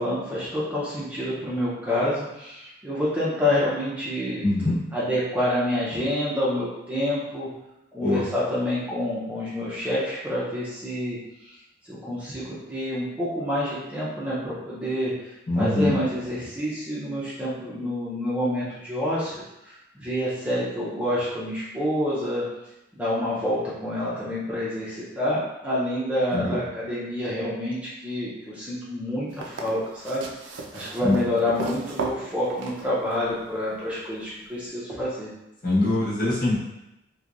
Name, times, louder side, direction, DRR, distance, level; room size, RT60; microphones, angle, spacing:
voice 1, 0.0-4.4 4.9-7.5 7.9-11.5 11.9-19.3 19.7-22.5 22.9-30.3 30.7-35.3, left 1 dB, 10° right, -9 dB, 0.5 m, -28 dB
voice 2, 4.4-4.8 8.0-8.2 15.5-16.0 26.3-26.6 31.0-31.2 35.6-36.5, left 2 dB, 45° left, -9 dB, 1.0 m, -23 dB
sound 1, 29.3-33.4 34.7-34.8, right 3 dB, 80° right, 0.4 m, -35 dB
2.9 x 2.2 x 2.4 m, 0.90 s
head